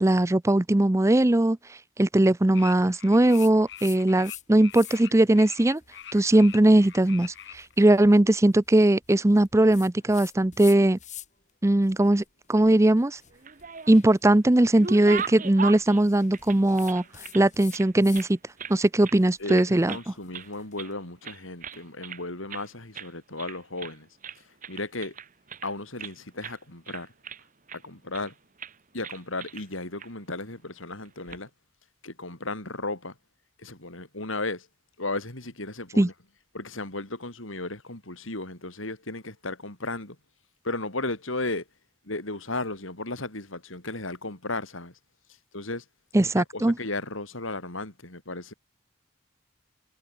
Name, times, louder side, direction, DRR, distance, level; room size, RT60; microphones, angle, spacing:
voice 1, 0.0-1.6 2.0-5.8 6.1-11.0 11.6-12.2 12.5-13.2 13.9-17.0 17.3-18.4 18.7-20.0 36.0-36.1 46.1-46.7, right 1 dB, 15° right, 0.5 m, -20 dB
sound 1, 2.5-7.7, left 10 dB, 60° left, 2.2 m, -44 dB
sound 2, 3.3-4.4 4.7-5.2 5.7-11.5 11.8-18.3 18.6-20.8, left 11 dB, 40° left, 6.6 m, -47 dB
sound 3, 13.3-14.1 14.5-17.4 17.7-18.8 19.0-19.2 19.5-20.1 20.3-21.0 21.2-22.2 22.5-22.7 22.9-23.1 23.4-24.0 24.2-26.1 26.4-26.6 26.9-27.8 28.1-28.3 28.6-28.8 29.0-29.7 30.0-30.1 31.1-31.4, right 6 dB, 40° right, 1.3 m, -38 dB
voice 2, 19.4-24.1 24.7-25.2 25.6-27.1 27.8-28.3 28.9-31.5 32.0-33.1 33.6-34.7 35.0-36.1 36.5-40.2 40.6-41.6 42.1-44.9 45.5-45.8 46.2-48.5, left 2 dB, 85° left, 5.3 m, -35 dB
head